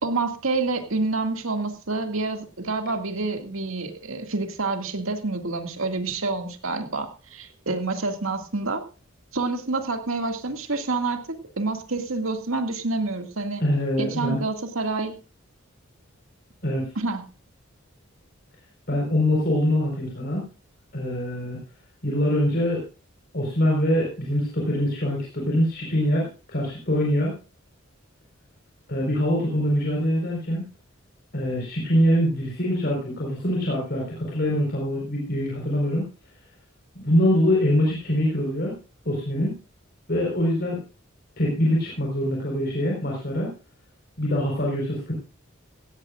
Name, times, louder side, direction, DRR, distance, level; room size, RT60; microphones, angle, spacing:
voice 1, 0.0-8.8 9.3-13.6 14.0-15.1 17.0-17.3, right 3 dB, 85° right, 6 dB, 2.2 m, -28 dB
voice 2, 13.6-14.4 16.6-16.9 18.9-20.5 20.9-21.6 22.0-22.8 23.3-27.4 28.9-30.7 31.3-36.1 36.9-38.8 39.0-39.6 40.1-40.8 41.4-43.5 44.2-45.1, equal, 50° left, -2 dB, 4.6 m, -24 dB
17.0 x 16.5 x 2.5 m, 0.34 s
head